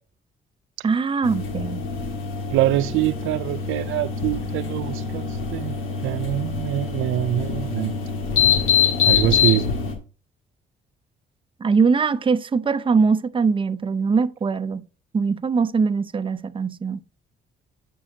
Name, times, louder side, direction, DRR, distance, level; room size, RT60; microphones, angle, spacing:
voice 1, 0.8-1.8 11.6-14.8 15.1-17.0, right 5 dB, 25° right, 0.6 m, -22 dB
sound 1, 1.2-9.9, left 7 dB, 85° left, 1.8 m, -24 dB
voice 2, 2.5-5.7 6.0-7.9 9.1-9.7, right 15 dB, 85° right, 0.4 m, -24 dB
9.7 x 5.5 x 2.7 m
cardioid pair, 90°, 20 cm